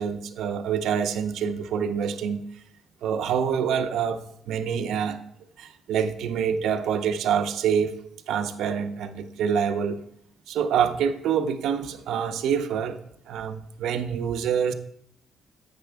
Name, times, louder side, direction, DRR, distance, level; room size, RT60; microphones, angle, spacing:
voice 1, 0.0-2.4 3.0-5.2 5.6-7.9 8.3-10.0 10.5-13.0 13.3-14.7, right 7 dB, 80° right, 8 dB, 0.6 m, -26 dB
8.0 x 6.7 x 3.4 m, 0.73 s
cardioid pair, 90°, 0 cm